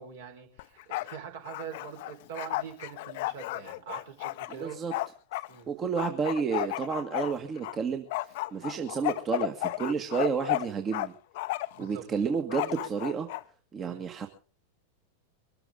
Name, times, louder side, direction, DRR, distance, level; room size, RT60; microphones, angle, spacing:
voice 1, 0.0-4.8 5.5-5.7 11.8-12.2 13.8-14.0, right 8 dB, 55° right, 4 dB, 4.7 m, -43 dB
Bark, 0.6-1.2 1.5-5.5 6.0-7.8 8.1-11.1 11.4-11.8 12.5-13.4, left 19 dB, 50° left, 0.8 m, -33 dB
voice 2, 4.6-4.9 5.7-8.1 8.5-11.1 11.8-13.3 13.7-14.3, right 6 dB, 25° right, 5 dB, 1.8 m, -30 dB
23.5 x 14.0 x 3.8 m, 0.38 s
figure-of-eight pair, 90°, 0 cm